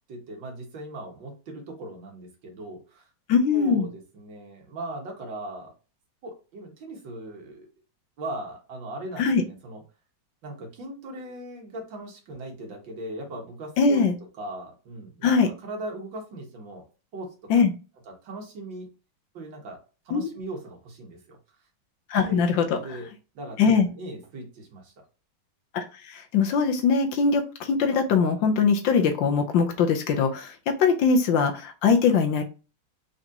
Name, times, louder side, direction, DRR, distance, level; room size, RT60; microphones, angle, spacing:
voice 1, 0.1-3.1 3.5-5.7 6.2-7.7 8.2-9.8 10.4-14.0 14.4-16.8 17.1-17.5 18.1-18.9 19.3-21.4 22.2-23.1 23.4-24.9, right 1 dB, 65° right, 1 dB, 2.0 m, -39 dB
voice 2, 3.3-3.9 9.2-9.4 13.8-14.1 15.2-15.5 17.5-17.7 20.1-20.3 22.1-22.8 23.6-23.9 25.7-32.4, left 5 dB, 70° left, 5 dB, 1.3 m, -22 dB
4.6 x 3.9 x 2.8 m, 0.33 s
omnidirectional pair, 2.2 m